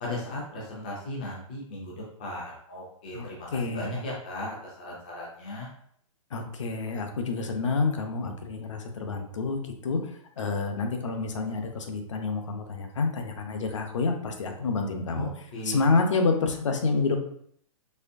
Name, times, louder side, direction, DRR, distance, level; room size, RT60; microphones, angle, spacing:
voice 1, 0.0-3.5 3.7-5.7 15.1-15.8, left 1 dB, 15° left, -4 dB, 0.4 m, -36 dB
voice 2, 3.1-4.0 6.3-15.3 15.6-17.2, left 4 dB, 60° left, 4 dB, 0.6 m, -28 dB
4.2 x 2.9 x 2.5 m, 0.65 s
hypercardioid pair, 180°, 18 cm